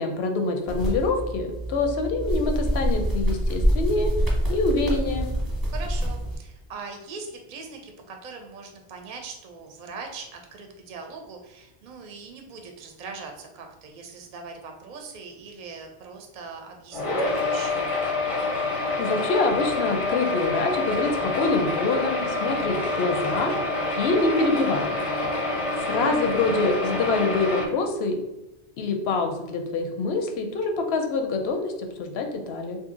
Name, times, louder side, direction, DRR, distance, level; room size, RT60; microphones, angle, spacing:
voice 1, 0.0-4.1 4.5-5.3 19.0-23.5 23.9-24.9 25.8-28.2 28.8-32.8, left 3 dB, 80° left, 4 dB, 0.8 m, -25 dB
sound 1, 0.7-6.4, equal, 25° right, 0.8 m, -26 dB
voice 2, 5.7-17.8, right 4 dB, 55° right, 3 dB, 0.6 m, -41 dB
sound 2, 16.9-27.7, left 2 dB, 40° left, 0.5 m, -27 dB
2.7 x 2.6 x 3.7 m, 0.96 s
omnidirectional pair, 1.1 m